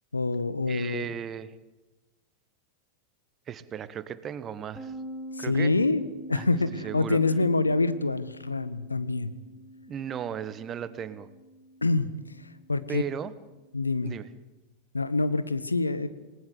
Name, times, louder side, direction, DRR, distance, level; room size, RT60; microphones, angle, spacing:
voice 1, 0.1-1.1 5.4-6.0 6.3-9.3 11.8-12.1 12.7-13.0 13.7-14.1 14.9-16.1, left 3 dB, 80° left, 14 dB, 1.5 m, -26 dB
voice 2, 0.7-1.5 3.5-4.9 5.4-5.8 6.3-6.6 6.8-7.2 9.9-11.3 12.9-13.3 14.0-14.3, right 9 dB, 25° right, 15 dB, 1.5 m, -36 dB
sound 1, 4.7-14.2, right 1 dB, 15° left, 5.0 m, -45 dB
28.0 x 19.5 x 8.0 m, 1.1 s
figure-of-eight pair, 90°, 0 cm